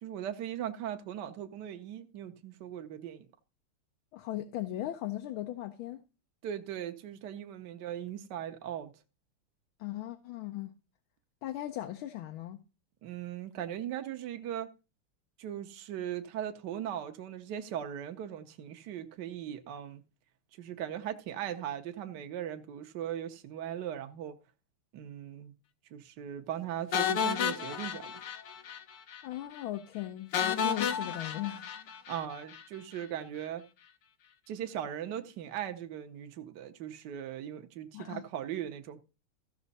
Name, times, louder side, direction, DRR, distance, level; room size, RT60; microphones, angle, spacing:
voice 1, 0.0-3.3 6.4-8.9 13.0-14.7 15.4-20.0 20.6-24.3 24.9-25.5 25.9-28.2 32.1-33.6 34.5-39.0, right 10 dB, 60° right, 1.3 m, -39 dB
voice 2, 4.1-6.0 9.8-10.7 11.4-12.6 29.2-31.7 37.9-38.2, left 14 dB, 80° left, 1.6 m, -38 dB
sound 1, 26.9-28.8 29.1-29.2 29.6-29.7 30.3-32.6, left 8 dB, 60° left, 1.3 m, -32 dB
14.5 x 6.1 x 4.1 m
omnidirectional pair, 2.3 m